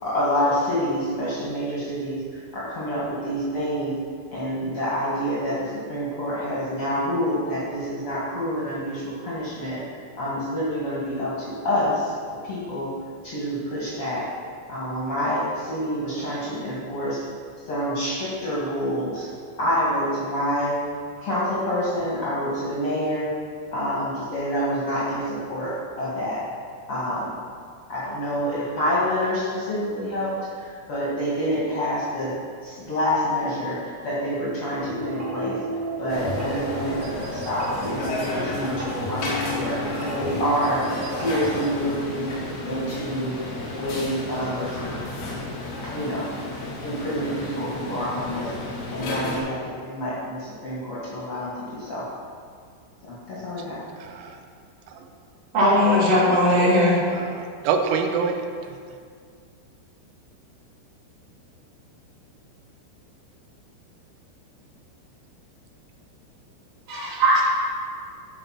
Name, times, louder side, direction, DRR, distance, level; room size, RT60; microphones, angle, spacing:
voice 1, 0.0-2.2 2.5-3.9 4.3-9.8 10.2-12.1 12.4-12.9 13.2-14.3 14.7-17.2 17.6-19.3 19.6-20.7 21.2-23.3 23.7-26.4 26.9-27.3 27.9-32.3 32.6-33.8 34.0-35.6 36.0-40.8 41.1-42.3 42.6-43.4 43.7-44.8 45.9-46.3 46.8-48.5 48.9-52.0 53.1-53.8, equal, 90° left, -8 dB, 1.2 m, -27 dB
sound 1, 34.8-41.8, equal, 50° right, 3.0 m, -32 dB
sound 2, 36.1-49.4, left 2 dB, 65° left, 3.8 m, -33 dB
voice 2, 54.0-54.4 54.9-55.1 56.5-56.8 57.1-58.7, right 6 dB, 80° right, 4 dB, 3.1 m, -27 dB
voice 3, 55.5-57.0 66.9-67.4, equal, 30° right, -9 dB, 2.7 m, -18 dB
12.5 x 4.7 x 5.9 m, 2.1 s
omnidirectional pair, 5.9 m